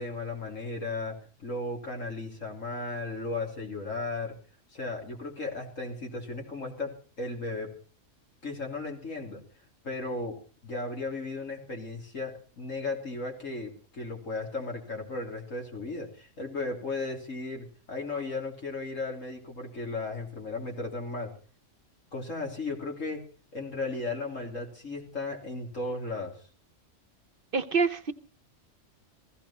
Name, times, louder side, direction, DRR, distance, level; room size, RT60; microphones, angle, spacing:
voice 1, 0.0-4.4 4.7-7.7 8.4-9.4 9.8-21.3 22.1-23.2 23.5-26.4, left 3 dB, 85° left, 1 dB, 3.6 m, -35 dB
voice 2, 27.5-28.1, right 5 dB, 50° right, 12 dB, 0.9 m, -26 dB
16.0 x 15.5 x 4.3 m, 0.38 s
omnidirectional pair, 1.3 m